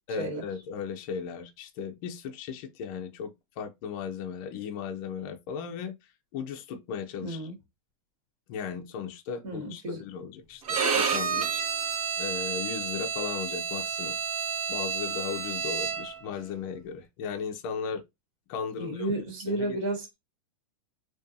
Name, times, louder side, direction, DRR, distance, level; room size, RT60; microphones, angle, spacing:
voice 1, 0.1-5.9 6.3-7.5 8.5-11.6 12.2-14.2 14.7-18.0 18.5-19.1 19.5-19.8, left 6 dB, 35° left, 0.4 m, -36 dB
voice 2, 7.2-7.5 9.4-10.0 18.8-20.2, right 2 dB, 60° right, 1.3 m, -32 dB
Bowed string instrument, 10.7-16.2, right 6 dB, 80° right, 0.8 m, -30 dB
2.5 x 2.3 x 2.4 m
supercardioid pair, 155°, 18 cm